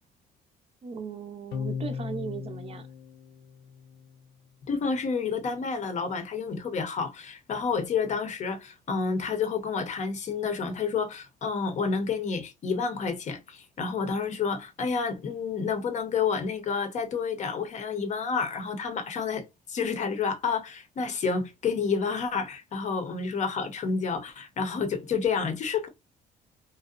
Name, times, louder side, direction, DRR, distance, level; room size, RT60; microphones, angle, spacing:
voice 1, 0.8-2.9, right 6 dB, 35° right, 0.6 m, -37 dB
sound 1, 1.5-4.1, left 6 dB, 75° left, 0.4 m, -37 dB
voice 2, 4.7-25.9, left 5 dB, 45° left, 0.7 m, -29 dB
2.6 x 2.1 x 2.3 m
cardioid pair, 110°, 17 cm